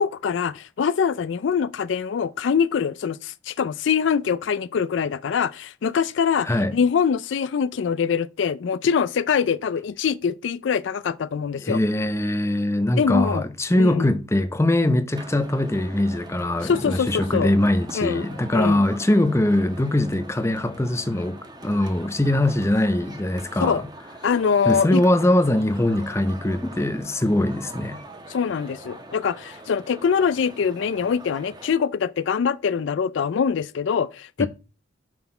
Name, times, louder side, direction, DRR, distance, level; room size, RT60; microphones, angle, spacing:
voice 1, 0.0-11.8 13.0-13.4 13.8-14.1 16.6-17.5 17.9-18.2 18.5-18.8 23.6-23.8 24.2-25.0 28.3-34.5, left 6 dB, 65° left, 0.4 m, -23 dB
voice 2, 6.4-6.8 11.6-23.9 24.7-28.0 34.4-34.5, left 1 dB, 15° left, 0.6 m, -22 dB
sound 1, 15.1-31.7, right 1 dB, 20° right, 1.1 m, -43 dB
6.1 x 5.7 x 4.3 m
head